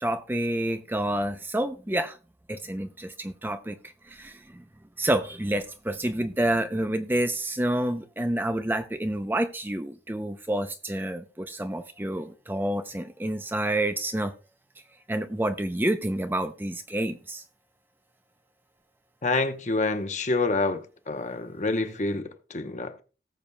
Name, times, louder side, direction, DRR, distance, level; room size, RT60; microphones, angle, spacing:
voice 1, 0.0-2.2 2.5-3.8 4.0-4.6 5.0-14.3 15.1-17.4, right 1 dB, 10° right, 0.5 m, -28 dB
voice 2, 19.2-23.0, left 3 dB, 40° left, 0.8 m, -27 dB
18.5 x 7.1 x 2.2 m
head